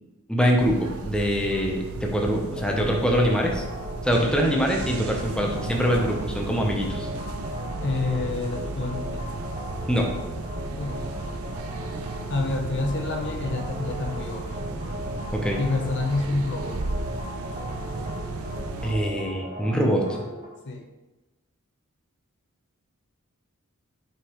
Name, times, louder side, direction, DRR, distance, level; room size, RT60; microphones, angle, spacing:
voice 1, 0.3-3.6 4.0-7.1 9.9-10.1 15.3-15.6 18.8-20.1, equal, 5° left, 0 dB, 0.8 m, -24 dB
sound 1, 0.6-18.9, right 2 dB, 75° right, 0.6 m, -34 dB
sound 2, 2.6-20.5, equal, 35° right, 1.4 m, -38 dB
voice 2, 7.8-9.2 10.8-11.1 12.3-14.6 15.6-16.9 20.6-20.9, left 2 dB, 55° left, 3 dB, 0.7 m, -28 dB
6.6 x 5.1 x 3.1 m, 1.1 s
head